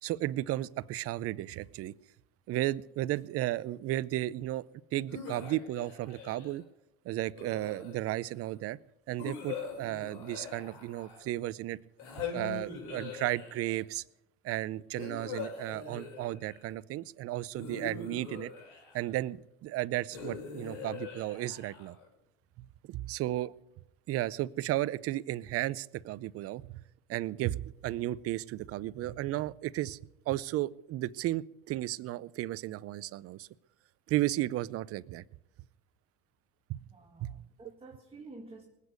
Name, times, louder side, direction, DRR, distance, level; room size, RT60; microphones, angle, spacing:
voice 1, 0.0-1.9 2.5-4.7 4.9-6.6 7.0-8.8 9.1-11.8 12.3-14.0 14.4-18.5 18.9-22.0 22.6-23.5 24.1-26.8 27.1-30.0 30.3-33.5 34.1-35.2 36.7-36.8 37.2-37.4, right 15 dB, 45° right, 19 dB, 0.6 m, -34 dB
sound 1, 5.1-6.6 7.3-8.3 9.2-11.4 12.0-13.8 15.0-16.7 17.5-19.2 20.1-22.1, left 5 dB, 65° left, 5.7 m, -42 dB
voice 2, 36.8-38.6, right 3 dB, 15° right, 0 dB, 2.2 m, -51 dB
19.5 x 8.4 x 8.1 m, 0.84 s
supercardioid pair, 100°, 33 cm